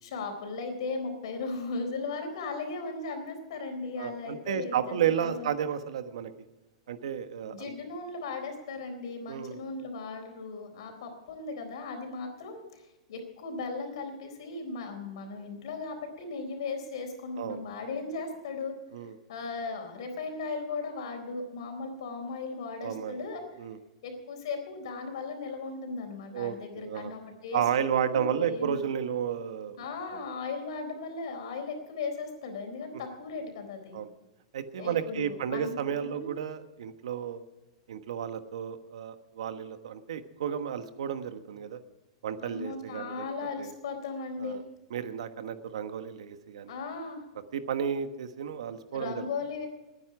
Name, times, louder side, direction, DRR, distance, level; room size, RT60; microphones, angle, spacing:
voice 1, 0.0-5.5 7.5-12.8 13.1-18.7 19.3-23.4 24.0-28.8 29.8-34.0 34.8-36.3 42.4-44.6 46.7-47.2 48.9-49.7, left 4 dB, 60° left, 5 dB, 4.0 m, -37 dB
voice 2, 4.0-6.3 6.9-7.7 9.3-9.6 17.4-17.6 18.9-19.2 22.8-23.2 23.6-23.8 26.3-27.1 27.5-29.8 33.9-34.1 34.5-37.4 37.9-41.8 42.2-43.2 43.6-43.7 44.4-44.6 44.9-46.7 47.5-49.3, right 8 dB, 85° right, 10 dB, 1.3 m, -32 dB
21.0 x 9.7 x 4.9 m, 1.1 s
supercardioid pair, 180°, 3 cm